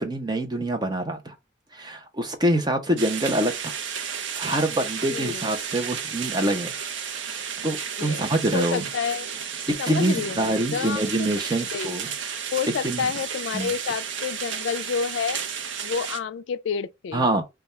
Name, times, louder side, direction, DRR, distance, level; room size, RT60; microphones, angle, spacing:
voice 1, 0.0-1.3 1.7-3.7 4.3-6.7 7.0-7.1 7.6-8.8 9.7-12.1 12.8-13.1 13.5-13.7 17.1-17.4, right 1 dB, 20° right, 0.7 m, -25 dB
sound 1, 3.0-16.2, right 7 dB, 70° right, 0.6 m, -32 dB
voice 2, 5.1-5.5 8.0-8.3 8.5-9.3 9.8-11.3 11.6-12.2 12.5-15.4 15.8-17.3, left 6 dB, 70° left, 0.3 m, -29 dB
3.4 x 2.3 x 4.0 m
head